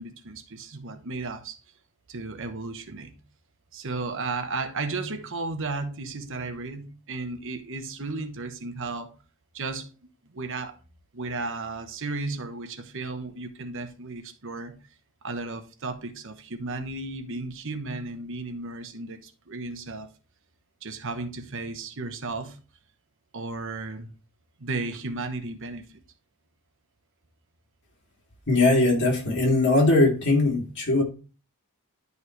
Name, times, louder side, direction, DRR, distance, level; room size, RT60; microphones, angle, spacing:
voice 1, 0.0-1.6 2.1-3.2 3.7-9.1 9.5-9.9 10.3-10.7 11.1-14.8 15.2-20.1 20.8-22.6 23.3-24.1 24.6-25.9, right 3 dB, 60° right, 1.2 m, -34 dB
voice 2, 28.5-31.0, left 2 dB, 55° left, 2.8 m, -20 dB
11.0 x 5.5 x 3.3 m
head